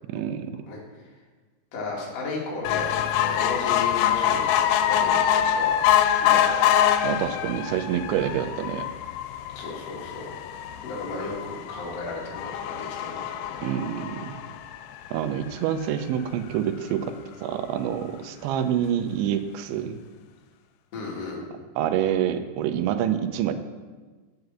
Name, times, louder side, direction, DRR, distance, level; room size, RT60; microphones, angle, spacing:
voice 1, 0.1-0.6 7.0-8.9 13.6-14.5 15.1-17.2 17.4-20.0 21.8-23.5, right 10 dB, 90° right, 9 dB, 2.9 m, -27 dB
voice 2, 1.7-5.2 5.5-5.8 6.2-6.7 9.5-10.3 10.8-13.7 20.9-21.4, left 3 dB, 45° left, -3 dB, 2.5 m, -34 dB
sound 1, 2.6-15.2 15.8-15.9 16.2-16.3 16.5-16.6, left 10 dB, 90° left, 2.9 m, -25 dB
8.1 x 6.8 x 6.8 m, 1.4 s
omnidirectional pair, 5.2 m